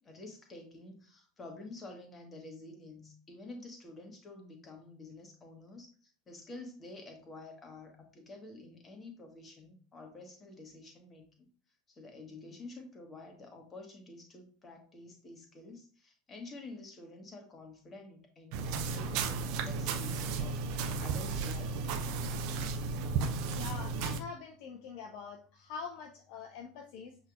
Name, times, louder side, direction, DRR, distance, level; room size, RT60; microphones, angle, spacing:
voice 1, 0.0-11.5 11.9-21.8, left 2 dB, 25° left, 3 dB, 1.3 m, -49 dB
sound 1, 18.5-24.2, right 4 dB, 50° right, 0.5 m, -34 dB
voice 2, 23.5-27.2, left 5 dB, 55° left, 4 dB, 0.5 m, -44 dB
7.2 x 3.0 x 2.4 m, 0.42 s
figure-of-eight pair, 75°, 0 cm